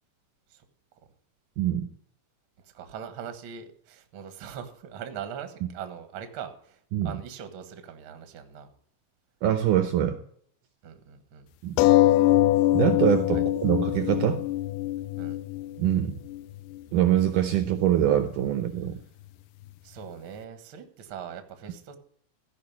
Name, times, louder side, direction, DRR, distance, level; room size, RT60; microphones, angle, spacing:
voice 1, 1.6-1.9 6.9-7.1 9.4-10.2 11.6-11.8 12.7-14.4 15.8-16.2 16.9-19.0, right 11 dB, 75° right, 9 dB, 2.1 m, -24 dB
voice 2, 2.6-8.7 10.8-11.5 13.3-13.4 15.2-15.4 19.8-22.0, right 8 dB, 55° right, 8 dB, 1.6 m, -41 dB
sound 1, 11.8-16.8 17.5-17.6 17.9-18.0, left 15 dB, 90° left, 1.8 m, -23 dB
15.5 x 5.6 x 7.2 m, 0.63 s
omnidirectional pair, 4.3 m